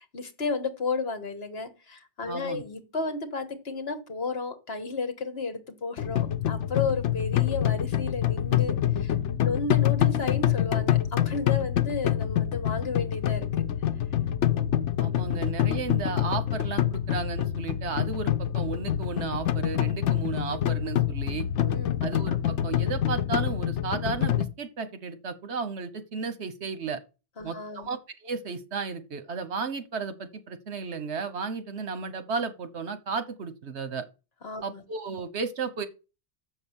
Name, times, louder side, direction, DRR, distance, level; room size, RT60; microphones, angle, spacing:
voice 1, 0.0-9.1 9.4-13.5 21.6-22.0 27.4-27.9 34.4-34.8, left 4 dB, 65° left, 1.7 m, -33 dB
voice 2, 2.3-2.6 15.0-21.5 22.0-27.0 27.4-34.0 34.6-35.9, right 5 dB, 75° right, 1.3 m, -34 dB
sound 1, 6.0-24.5, left 11 dB, 85° left, 1.0 m, -26 dB
7.2 x 6.3 x 7.2 m
omnidirectional pair, 1.2 m